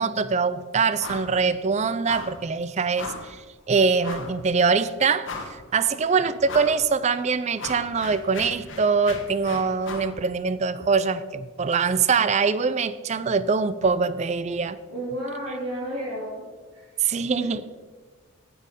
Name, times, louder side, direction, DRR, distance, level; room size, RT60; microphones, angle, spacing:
voice 1, 0.0-3.4 3.7-5.3 5.7-14.8 17.0-17.6, right 5 dB, 30° right, 15 dB, 0.4 m, -23 dB
sound 1, 1.0-1.3 1.6-1.7 2.1-2.4 3.0-3.3 4.0-4.4 4.8-4.9 5.2-5.8 6.5-6.8 7.2-10.1, left 3 dB, 60° left, 1.3 m, -37 dB
voice 2, 14.9-16.4 16.7-16.9, right 1 dB, 85° right, -8 dB, 2.8 m, -32 dB
9.1 x 8.6 x 5.2 m, 1.4 s
head